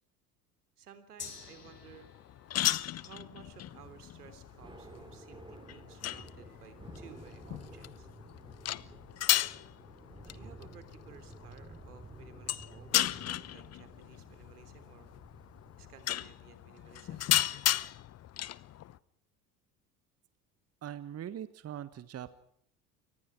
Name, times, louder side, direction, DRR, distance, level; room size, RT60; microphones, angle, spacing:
voice 1, 0.8-2.1 2.9-8.1 10.2-15.1 15.8-18.0, right 7 dB, 75° right, 10 dB, 3.5 m, -56 dB
Gong, 1.2-9.0 9.3-9.4, left 6 dB, 80° left, 3.8 m, -55 dB
sound 1, 1.2-19.0, left 13 dB, 35° left, 0.9 m, -35 dB
Thunder / Rain, 3.4-16.3, right 2 dB, 10° right, 3.9 m, -53 dB
voice 2, 20.8-22.3, right 10 dB, 30° right, 14 dB, 1.4 m, -41 dB
29.0 x 25.0 x 4.7 m, 0.66 s
figure-of-eight pair, 65°, 46 cm